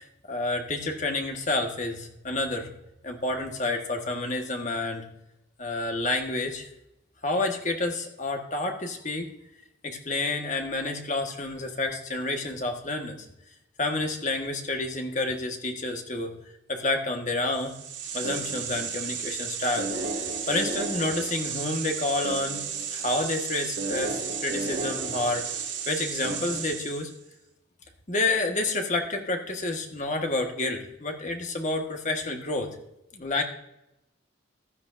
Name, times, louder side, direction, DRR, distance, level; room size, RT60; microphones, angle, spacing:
voice 1, 0.0-2.7 3.0-5.1 5.6-6.7 7.2-9.3 9.8-13.3 13.8-16.4 16.7-17.7 18.1-19.9 20.5-27.1 28.1-32.8 33.1-33.4, left 2 dB, 40° left, 3 dB, 1.4 m, -29 dB
sound 1, 17.5-27.1, right 5 dB, 65° right, 2.4 m, -32 dB
15.5 x 12.0 x 2.6 m, 0.86 s
head